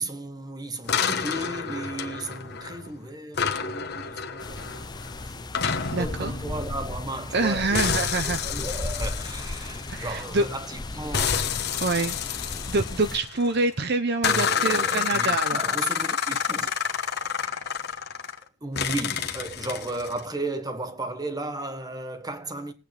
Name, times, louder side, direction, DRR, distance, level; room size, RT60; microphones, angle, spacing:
voice 1, 0.0-4.8 5.2-5.6 6.0-8.0 8.4-11.4 14.2-16.7 18.6-22.7, right 2 dB, 15° right, 1.2 m, -35 dB
sound 1, 0.9-2.9 3.3-7.4 7.7-10.5 11.1-13.6 14.2-18.4 18.8-20.2, left 7 dB, 50° left, 1.2 m, -29 dB
sound 2, 4.4-13.2, left 2 dB, 20° left, 0.5 m, -36 dB
voice 2, 5.9-6.3 7.3-8.5 9.9-10.4 11.8-12.2 12.7-15.6, right 3 dB, 50° right, 0.7 m, -26 dB
21.5 x 8.8 x 3.4 m
head